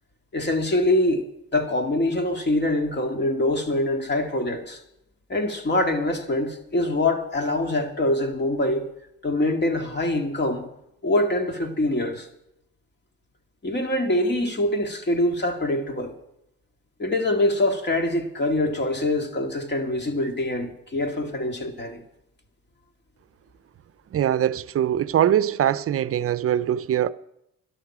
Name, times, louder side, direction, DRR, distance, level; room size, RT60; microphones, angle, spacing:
voice 1, 0.3-1.2 1.5-4.8 5.3-8.9 9.2-10.7 11.0-12.3 13.6-16.1 17.0-22.0, left 1 dB, 35° left, 2.1 m, -24 dB
voice 2, 24.1-27.1, right 10 dB, 50° right, 0.5 m, -22 dB
13.0 x 11.5 x 6.0 m
cardioid pair, 90°, 30 cm